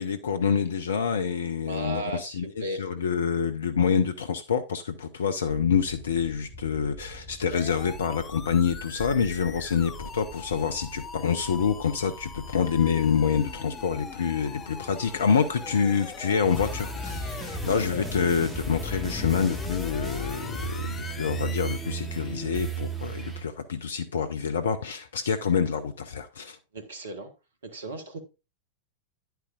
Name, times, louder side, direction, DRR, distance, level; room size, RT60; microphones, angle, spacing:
voice 1, 0.0-26.6, left 6 dB, 65° left, 0.6 m, -27 dB
voice 2, 1.7-2.8 17.9-18.1 26.7-27.3 27.6-28.2, right 2 dB, 65° right, 1.3 m, -35 dB
sound 1, 5.4-16.6, equal, 45° left, 4.4 m, -46 dB
sound 2, 7.5-22.4, left 5 dB, 20° left, 0.8 m, -42 dB
sound 3, 16.4-23.4, right 2 dB, 10° right, 2.5 m, -34 dB
9.9 x 9.0 x 2.4 m
figure-of-eight pair, 90°, 0 cm